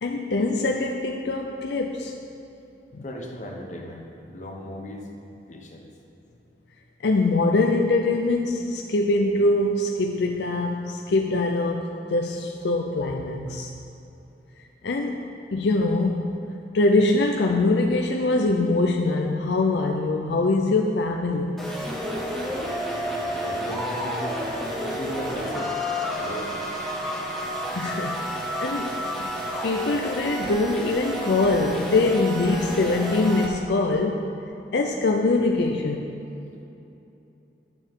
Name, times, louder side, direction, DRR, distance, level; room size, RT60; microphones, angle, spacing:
voice 1, 0.0-2.1 2.9-3.0 7.0-13.7 14.8-15.2 15.5-16.3 16.7-21.5 27.7-29.0 29.6-34.3 34.7-36.1, left 2 dB, 75° left, 1 dB, 0.5 m, -23 dB
voice 2, 3.0-5.1 5.5-5.9 23.3-24.4 24.8-25.8 26.1-26.6, equal, 40° left, 1 dB, 1.0 m, -37 dB
sound 1, 21.6-33.5, equal, ahead, 0.9 m, -30 dB
11.5 x 6.8 x 3.7 m, 2.9 s
head